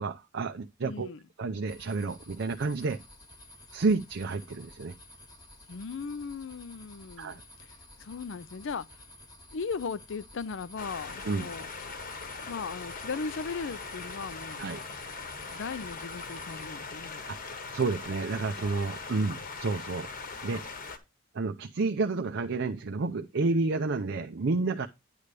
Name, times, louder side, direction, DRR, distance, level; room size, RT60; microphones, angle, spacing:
voice 1, 0.0-1.1 1.4-3.0 3.7-4.9 7.2-7.4 11.2-11.4 14.6-14.8 17.3-20.1 20.4-20.6 21.3-24.9, right 3 dB, 55° right, 0.5 m, -30 dB
voice 2, 0.8-1.2 5.7-7.3 7.6-7.7 8.0-8.9 9.5-11.7 12.5-14.6 15.5-17.2, left 5 dB, 60° left, 0.5 m, -37 dB
sound 1, 1.7-16.7, left 1 dB, 20° left, 1.2 m, -52 dB
sound 2, 10.8-21.0, left 4 dB, 40° left, 1.1 m, -41 dB
9.7 x 3.3 x 6.6 m
head